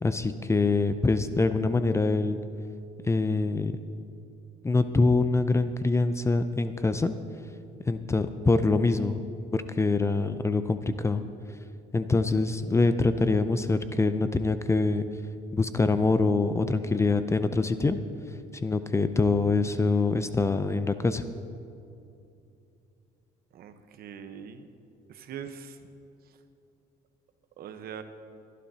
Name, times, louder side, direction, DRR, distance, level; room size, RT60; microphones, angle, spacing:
voice 1, 0.0-2.4 3.0-3.8 4.6-7.1 7.9-9.2 9.5-11.2 11.9-15.0 15.5-18.0 18.6-21.2, left 3 dB, 15° left, 10 dB, 0.5 m, -24 dB
voice 2, 23.5-24.7 25.1-25.8 26.2-26.4 27.6-28.0, right 8 dB, 65° right, 8 dB, 1.0 m, -42 dB
21.0 x 11.5 x 2.8 m, 2.6 s
cardioid pair, 110°, 17 cm